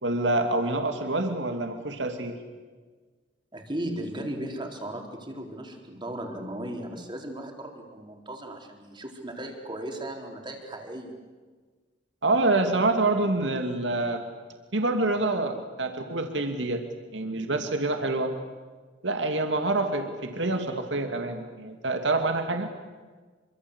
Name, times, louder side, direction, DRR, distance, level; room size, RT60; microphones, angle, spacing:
voice 1, 0.0-2.4 12.2-14.2 14.7-16.8 17.1-18.3 19.0-22.7, right 2 dB, 75° right, 5 dB, 2.6 m, -26 dB
voice 2, 3.5-11.2, right 1 dB, 25° right, 3 dB, 4.2 m, -36 dB
27.0 x 25.0 x 8.2 m, 1.4 s
head